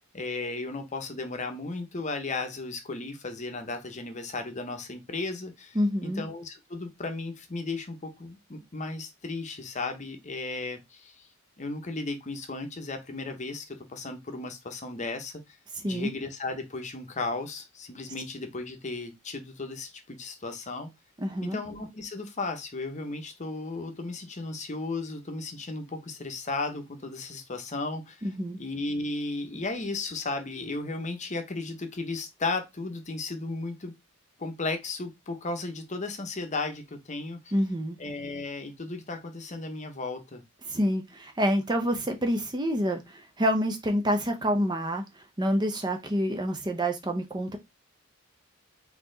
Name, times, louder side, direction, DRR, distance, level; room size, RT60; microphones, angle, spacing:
voice 1, 0.1-11.3 11.6-15.6 15.8-20.9 21.4-28.3 28.6-33.9 34.4-37.5 38.0-40.4, left 3 dB, 35° left, 0.8 m, -35 dB
voice 2, 5.7-6.2 15.8-16.1 21.2-21.6 28.2-28.6 37.5-38.0 40.7-47.6, equal, 20° right, 0.6 m, -27 dB
4.2 x 2.8 x 3.9 m
head